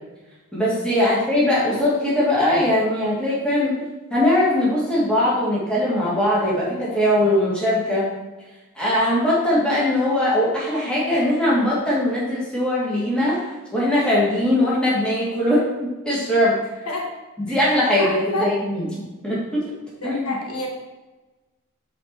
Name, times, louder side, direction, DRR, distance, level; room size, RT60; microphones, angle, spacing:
voice 1, 0.5-3.8 4.1-8.1 8.8-15.6 16.0-16.6 17.4-18.9 19.2-19.6 20.0-20.3, left 1 dB, 5° left, -8 dB, 2.5 m, -20 dB
voice 2, 18.0-18.5 20.0-20.7, left 2 dB, 85° left, -1 dB, 1.5 m, -29 dB
7.1 x 4.9 x 4.7 m, 1.1 s
head